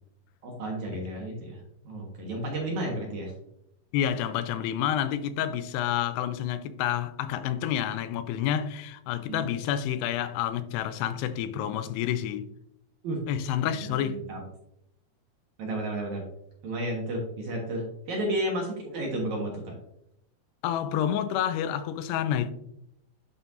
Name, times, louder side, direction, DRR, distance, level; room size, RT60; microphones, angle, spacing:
voice 1, 0.4-1.6 1.8-3.3 9.3-9.5 13.0-13.2 13.6-14.4 15.6-16.2 16.6-19.7, right 1 dB, 60° right, 2.3 m, -32 dB
voice 2, 3.9-12.5 13.3-14.2 20.6-22.5, left 10 dB, 90° left, 2.6 m, -29 dB
10.5 x 4.4 x 2.6 m
omnidirectional pair, 4.6 m